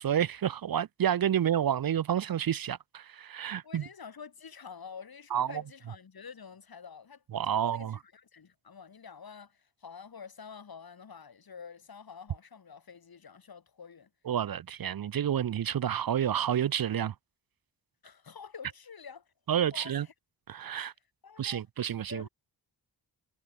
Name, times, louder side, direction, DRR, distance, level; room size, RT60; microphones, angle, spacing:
voice 1, 0.0-3.8 5.3-5.5 7.3-8.0 14.3-17.1 19.5-20.1 20.5-20.9 21.4-22.3, right 9 dB, 55° right, 0.6 m, -29 dB
voice 2, 3.6-7.2 7.5-14.1 18.0-19.3 19.7-20.1 21.2-21.6 22.1-22.3, left 6 dB, 60° left, 3.4 m, -48 dB
wide cardioid pair, 145°, 42 cm